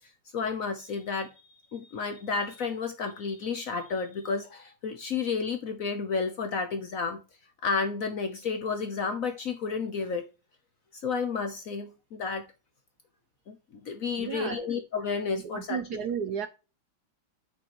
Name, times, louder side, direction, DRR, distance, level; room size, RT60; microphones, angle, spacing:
voice 1, 0.3-1.3 1.7-7.2 7.6-10.3 10.9-12.5 13.5-13.6 13.8-15.8, left 5 dB, 55° left, 1.0 m, -31 dB
voice 2, 14.2-14.7 15.5-16.5, right 7 dB, 70° right, 1.0 m, -33 dB
8.6 x 6.1 x 3.0 m
omnidirectional pair, 2.2 m